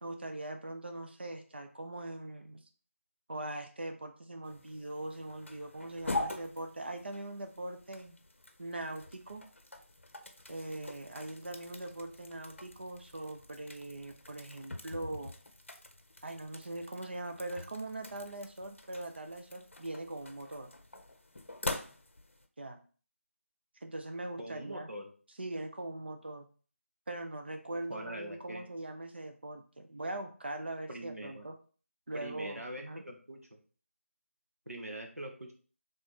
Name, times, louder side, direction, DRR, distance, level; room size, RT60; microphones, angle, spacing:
voice 1, 0.0-2.6 3.3-8.2 8.6-9.4 10.5-15.4 16.2-20.7 22.6-22.8 23.8-24.9 25.4-26.5 27.1-31.5 32.1-33.0, right 1 dB, 45° right, 6 dB, 0.7 m, -41 dB
sound 1, 4.4-22.5, left 2 dB, 60° left, 0.7 m, -44 dB
voice 2, 24.4-25.1 27.9-28.6 30.9-31.5 32.1-33.6 34.7-35.5, right 1 dB, 85° right, 2 dB, 1.3 m, -43 dB
3.3 x 3.3 x 4.2 m, 0.39 s
figure-of-eight pair, 165°, 8 cm